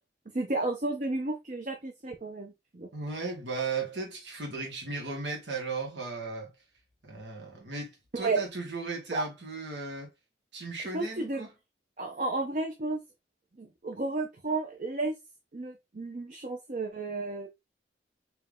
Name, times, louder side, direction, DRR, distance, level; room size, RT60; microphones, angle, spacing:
voice 1, 0.3-2.9 8.1-8.4 9.1-9.2 10.9-11.5 12.0-13.0 13.6-15.1 15.5-17.5, right 3 dB, 45° right, 0.7 m, -32 dB
voice 2, 2.9-6.5 7.0-10.1 10.5-11.5, right 4 dB, 85° right, 2.1 m, -36 dB
4.6 x 3.1 x 3.6 m
head